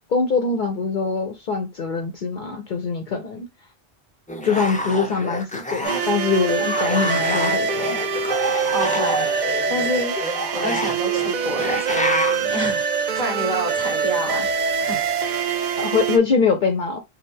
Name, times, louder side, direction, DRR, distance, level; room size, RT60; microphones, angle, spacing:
voice 1, 0.1-3.5 4.4-8.0 15.8-17.0, left 5 dB, 55° left, 0.7 m, -23 dB
sound 1, 4.3-6.2 6.5-12.4, left 1 dB, 10° left, 0.4 m, -28 dB
sound 2, 5.8-16.2, right 6 dB, 55° right, 0.6 m, -24 dB
voice 2, 8.7-9.3 9.7-10.1 10.5-12.9 13.1-14.5 14.8-15.0, equal, 35° right, 1.6 m, -28 dB
3.3 x 2.3 x 4.3 m
omnidirectional pair, 1.1 m